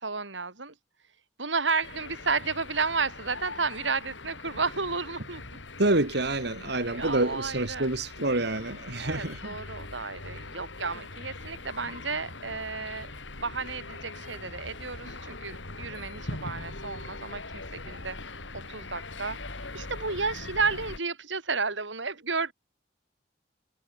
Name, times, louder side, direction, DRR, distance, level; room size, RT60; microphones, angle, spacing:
voice 1, 0.0-0.7 1.4-5.4 6.9-7.9 9.0-13.1 13.4-18.2 18.5-19.4 19.7-22.5, right 4 dB, 85° right, 4.6 m, -32 dB
sound 1, 1.8-21.0, left 2 dB, 90° left, 4.7 m, -41 dB
voice 2, 5.8-9.5, right 2 dB, 65° right, 2.9 m, -27 dB
head